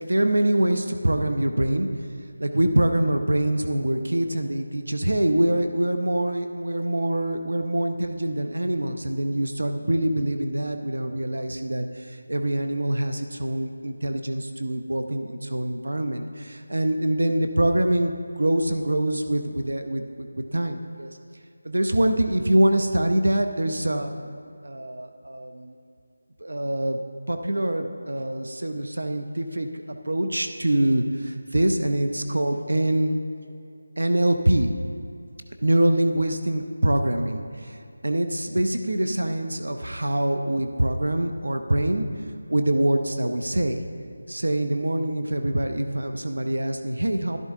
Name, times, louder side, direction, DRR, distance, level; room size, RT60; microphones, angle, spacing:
voice 1, 0.0-1.9 2.4-21.2 21.6-24.4 24.6-25.7 26.4-27.0 27.3-33.2 34.0-34.7 35.6-37.8 38.0-42.1 42.5-43.8 44.3-47.4, right 1 dB, 85° right, 6 dB, 0.8 m, -24 dB
12.0 x 12.0 x 3.7 m, 2.5 s
figure-of-eight pair, 170°, 0 cm